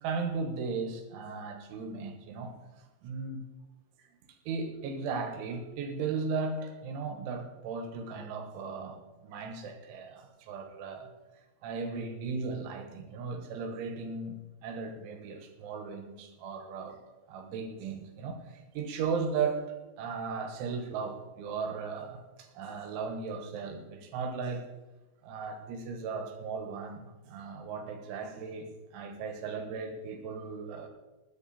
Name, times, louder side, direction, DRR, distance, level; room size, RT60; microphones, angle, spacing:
voice 1, 0.0-2.5 3.0-3.4 4.5-11.1 11.6-17.0 17.3-24.7 25.2-30.9, right 5 dB, 80° right, 5 dB, 3.8 m, -36 dB
20.0 x 9.7 x 4.3 m, 1.1 s
omnidirectional pair, 5.5 m